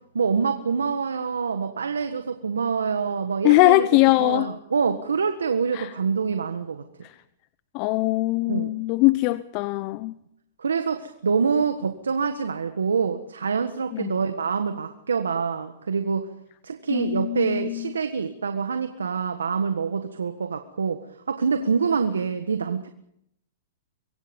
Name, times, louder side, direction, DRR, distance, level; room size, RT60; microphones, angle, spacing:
voice 1, 0.1-3.9 4.2-6.8 8.5-8.7 10.6-16.3 16.6-21.0 21.3-22.9, right 5 dB, 90° right, 1.5 m, -26 dB
voice 2, 3.4-4.5 5.7-5.9 7.0-7.2 7.7-10.2 13.9-14.2 16.9-17.9, left 20 dB, 45° left, 0.8 m, -21 dB
25.5 x 23.5 x 5.4 m
hypercardioid pair, 120°, 0 cm